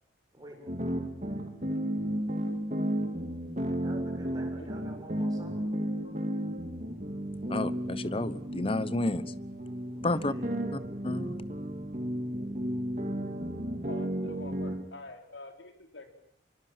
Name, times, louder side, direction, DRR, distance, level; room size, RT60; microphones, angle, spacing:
voice 1, 0.3-0.8 3.8-5.7 9.9-10.7, right 1 dB, 20° right, 2 dB, 6.9 m, -49 dB
sound 1, 0.7-14.9, equal, 40° right, 2.6 m, -33 dB
voice 2, 4.6-5.0 6.0-6.2 13.9-16.1, left 2 dB, 75° left, 6 dB, 4.2 m, -46 dB
voice 3, 7.5-9.2 10.0-10.3 11.0-11.4, left 2 dB, 30° left, 16 dB, 1.1 m, -30 dB
25.0 x 24.0 x 7.5 m, 0.70 s
head